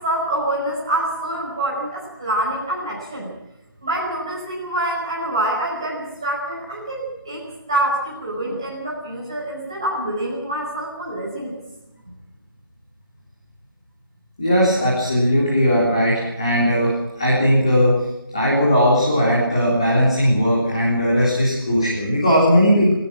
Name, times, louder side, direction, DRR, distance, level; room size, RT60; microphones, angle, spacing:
voice 1, 0.0-3.3 3.8-11.5, right 1 dB, 15° right, -6 dB, 5.2 m, -26 dB
voice 2, 14.4-17.9 18.3-22.9, equal, 15° left, -7 dB, 3.5 m, -18 dB
19.5 x 19.0 x 7.6 m, 0.89 s
figure-of-eight pair, 180°, 12 cm